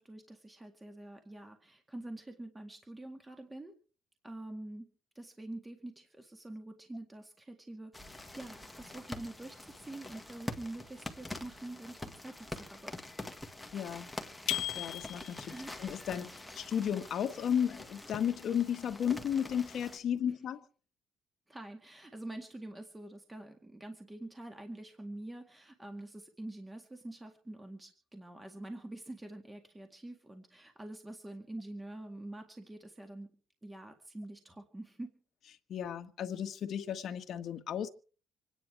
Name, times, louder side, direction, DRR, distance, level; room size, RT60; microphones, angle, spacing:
voice 1, 0.0-3.7 4.2-13.0 15.5-15.7 21.5-33.3 33.6-35.2, right 1 dB, 10° right, 2.0 m, -46 dB
sound 1, 7.9-20.0, left 1 dB, 5° left, 1.6 m, -45 dB
voice 2, 13.7-14.1 14.7-15.5 15.8-20.6 35.7-37.9, left 8 dB, 55° left, 1.6 m, -34 dB
sound 2, 14.5-15.6, left 15 dB, 85° left, 0.9 m, -36 dB
26.5 x 10.0 x 4.7 m
cardioid pair, 140°, 0 cm